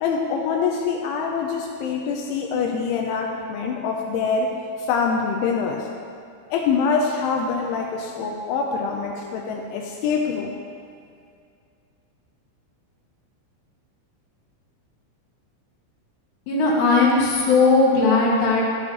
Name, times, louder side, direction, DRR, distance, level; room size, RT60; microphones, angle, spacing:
voice 1, 0.0-5.9 6.5-10.5, left 5 dB, 80° left, 1 dB, 2.8 m, -25 dB
voice 2, 16.5-18.6, left 3 dB, 65° left, -5 dB, 3.4 m, -18 dB
12.5 x 11.5 x 3.0 m, 2.3 s
omnidirectional pair, 6.0 m